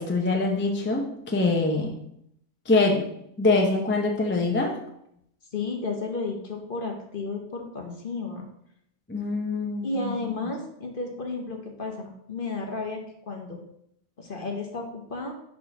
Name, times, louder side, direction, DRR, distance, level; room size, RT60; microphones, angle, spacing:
voice 1, 0.0-1.9 2.7-3.0 3.4-4.8 9.1-10.0, left 3 dB, 10° left, 1 dB, 0.5 m, -24 dB
voice 2, 5.5-8.5 9.8-13.0 13.3-13.6 14.2-15.3, left 3 dB, 40° left, 2 dB, 1.0 m, -32 dB
4.9 x 4.4 x 5.9 m, 0.74 s
omnidirectional pair, 1.5 m